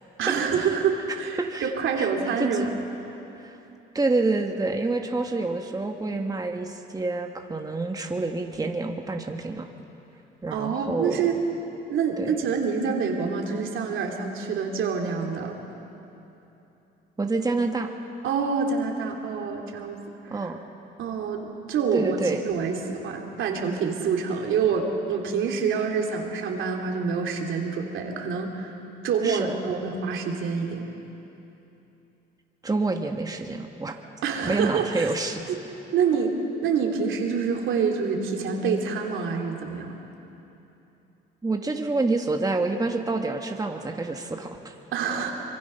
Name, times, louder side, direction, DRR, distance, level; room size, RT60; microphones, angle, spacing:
voice 1, 0.2-2.7 10.5-11.4 11.9-15.6 18.2-20.0 20.2-20.5 21.0-22.2 22.4-28.7 29.0-30.8 34.2-35.1 35.5-35.6 35.9-36.3 36.6-39.9 44.9-45.3, right 6 dB, 80° right, 1 dB, 2.8 m, -26 dB
voice 2, 1.4-1.7 2.0-2.1 2.4-2.7 3.4-3.5 3.9-9.7 10.4-11.3 12.2-12.3 17.2-17.9 20.3-20.6 21.9-22.4 29.2-29.5 32.6-34.0 34.4-35.4 41.4-44.7, right 3 dB, 20° right, 3 dB, 1.4 m, -27 dB
24.5 x 23.0 x 5.7 m, 2.9 s
cardioid pair, 90°, 20 cm